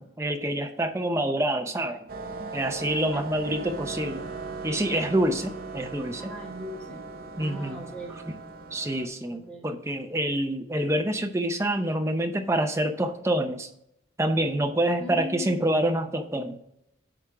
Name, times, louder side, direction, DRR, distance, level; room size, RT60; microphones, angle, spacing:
voice 1, 0.0-2.0 2.5-4.2 4.6-6.3 7.4-7.8 8.7-13.7 14.2-16.6, right 1 dB, 15° right, 6 dB, 0.6 m, -27 dB
sound 1, 2.1-9.1, right 4 dB, 50° right, 0.8 m, -38 dB
voice 2, 6.2-7.0 7.4-8.2 9.3-9.7 15.0-15.6, equal, 5° left, -3 dB, 1.9 m, -39 dB
9.9 x 3.6 x 4.9 m, 0.78 s
head